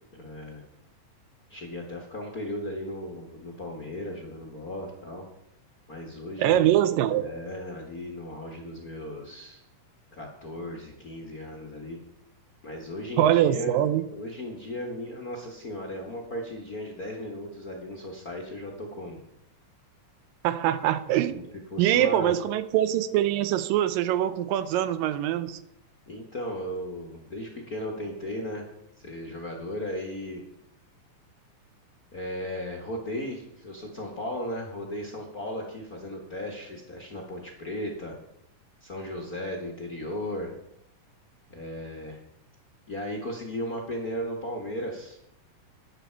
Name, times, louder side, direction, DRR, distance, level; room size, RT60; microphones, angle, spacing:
voice 1, 0.1-0.6 1.5-5.2 5.9-6.8 7.1-9.6 10.1-12.0 12.6-13.8 14.1-19.2 21.3-21.4 21.7-22.3 26.1-30.4 32.1-38.1 38.8-40.5 41.5-42.2 42.9-45.2, left 1 dB, 45° left, 1.2 m, -36 dB
voice 2, 6.4-7.2 13.2-14.0 20.4-21.5 21.8-25.6, right 12 dB, 85° right, 2.5 m, -23 dB
13.5 x 10.5 x 4.6 m
omnidirectional pair, 3.9 m